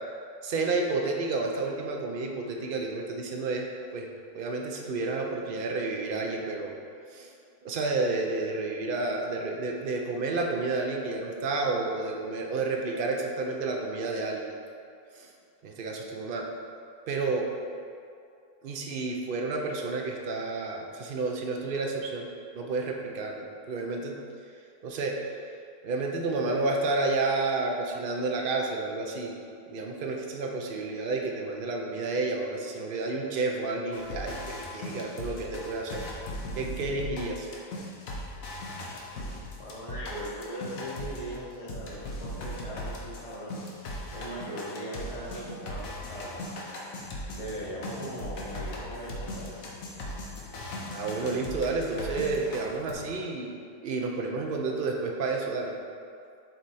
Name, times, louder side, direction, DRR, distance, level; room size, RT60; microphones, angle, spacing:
voice 1, 0.4-3.7 3.9-4.1 4.3-6.7 7.1-7.3 7.6-14.5 15.1-15.3 15.6-16.5 17.1-17.5 18.6-22.3 22.5-24.1 24.8-25.2 25.8-29.4 29.7-36.0 36.6-37.5 50.9-53.6 53.8-55.7, right 3 dB, 70° right, 0 dB, 0.5 m, -30 dB
sound 1, 33.9-41.4 41.7-52.9, left 1 dB, 65° left, 1.3 m, -38 dB
voice 2, 39.6-43.6 44.1-46.3 47.3-49.5, right 1 dB, 25° left, -8 dB, 0.9 m, -39 dB
7.8 x 3.2 x 4.1 m, 2.4 s
omnidirectional pair, 1.6 m